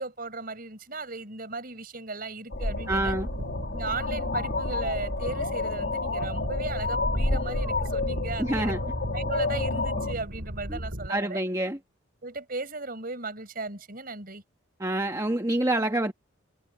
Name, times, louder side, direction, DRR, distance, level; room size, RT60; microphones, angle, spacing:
voice 1, 0.0-3.1 3.7-8.7 9.1-11.4 12.2-14.4, right 3 dB, 45° right, 5.5 m, -36 dB
sound 1, 2.5-10.1, left 3 dB, 55° left, 2.9 m, -30 dB
sound 2, 2.7-11.1, equal, 65° right, 5.8 m, -35 dB
voice 2, 2.9-3.3 8.4-8.8 10.7-10.8 11.1-11.8 14.8-16.1, right 1 dB, 15° right, 1.4 m, -27 dB
head